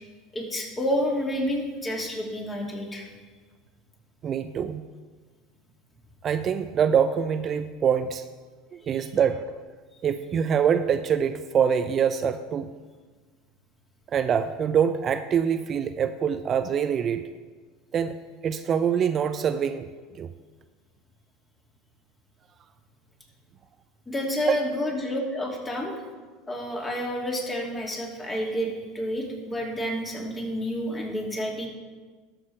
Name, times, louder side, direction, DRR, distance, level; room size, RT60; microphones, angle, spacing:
voice 1, 0.3-3.1 8.8-9.1 24.1-26.0 26.5-31.7, equal, 20° left, 0 dB, 2.6 m, -29 dB
voice 2, 4.2-4.9 6.2-8.2 8.7-9.5 10.0-12.7 14.1-17.2 17.9-18.2 18.4-19.9 20.2-20.3 24.5-24.6, right 7 dB, 40° right, 10 dB, 0.4 m, -24 dB
12.5 x 6.1 x 4.7 m, 1.4 s
hypercardioid pair, 85°, 0 cm